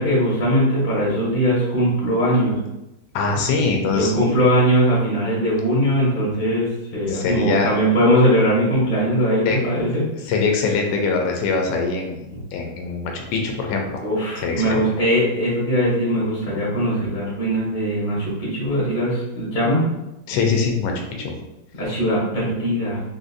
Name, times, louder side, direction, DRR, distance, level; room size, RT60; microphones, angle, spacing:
voice 1, 0.0-2.6 3.9-10.1 12.3-12.4 14.0-19.8 21.7-23.0, equal, 35° left, -7 dB, 0.8 m, -20 dB
voice 2, 3.1-4.2 7.1-7.7 9.5-9.6 10.3-14.0 14.4-14.8 20.3-20.9 21.2-21.3, left 4 dB, 80° left, 2 dB, 1.2 m, -22 dB
3.5 x 2.5 x 2.5 m, 0.92 s
omnidirectional pair, 2.0 m